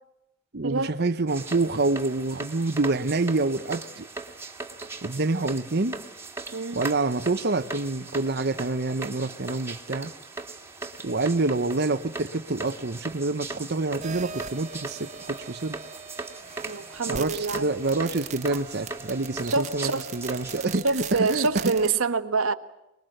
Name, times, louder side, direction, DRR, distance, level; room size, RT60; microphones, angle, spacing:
voice 1, 0.5-4.1 5.0-6.0 6.7-10.1 11.0-15.8 17.1-21.5, right 3 dB, 50° right, 0.9 m, -27 dB
sound 1, 1.3-20.8, right 3 dB, 10° right, 1.9 m, -39 dB
sound 2, 14.0-21.9, right 6 dB, 35° right, 1.4 m, -40 dB
voice 2, 16.6-17.7 19.4-20.0 20.8-22.5, right 4 dB, 85° right, 1.5 m, -26 dB
25.0 x 21.5 x 7.9 m
head